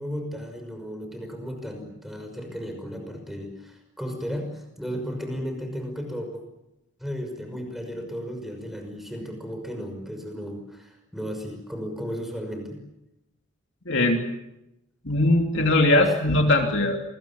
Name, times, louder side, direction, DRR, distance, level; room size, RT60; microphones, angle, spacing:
voice 1, 0.0-6.4 7.0-12.8 16.1-16.2, equal, ahead, 5 dB, 5.8 m, -34 dB
voice 2, 13.9-14.2 15.0-17.0, left 2 dB, 55° left, 2 dB, 3.1 m, -20 dB
28.5 x 22.0 x 7.4 m, 0.89 s
head